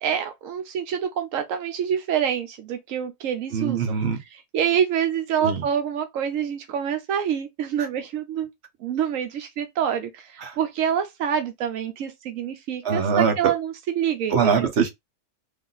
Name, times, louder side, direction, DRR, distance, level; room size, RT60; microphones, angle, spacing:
voice 1, 0.0-3.9 4.5-8.5 8.8-14.7, right 8 dB, 85° right, 1.0 m, -26 dB
voice 2, 3.5-4.2 5.4-5.6 7.8-7.9 10.4-10.6 12.8-13.4 14.3-14.9, right 6 dB, 60° right, 1.2 m, -23 dB
3.5 x 2.5 x 3.8 m
omnidirectional pair, 1.3 m